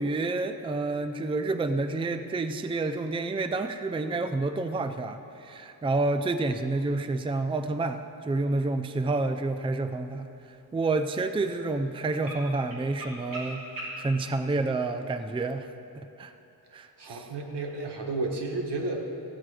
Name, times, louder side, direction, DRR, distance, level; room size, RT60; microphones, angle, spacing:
voice 1, 0.0-10.3 10.7-15.7 16.0-16.3 16.7-17.3, right 3 dB, 15° right, 9 dB, 0.4 m, -29 dB
sound 1, 6.0-14.6, right 1 dB, 55° right, 3.1 m, -46 dB
voice 2, 17.0-19.0, right 2 dB, 80° right, 1 dB, 1.4 m, -32 dB
15.0 x 8.7 x 4.9 m, 2.8 s
wide cardioid pair, 90°, 40 cm